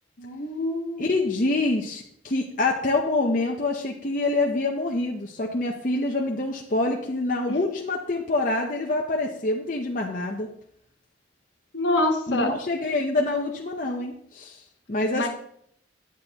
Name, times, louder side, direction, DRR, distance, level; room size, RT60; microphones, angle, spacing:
voice 1, 0.2-1.1 11.7-12.5 15.1-15.3, left 2 dB, 70° left, 3 dB, 1.4 m, -25 dB
voice 2, 1.0-10.5 12.3-14.6 14.9-15.3, left 2 dB, 45° left, 0 dB, 0.7 m, -26 dB
11.0 x 8.3 x 2.9 m, 0.69 s
head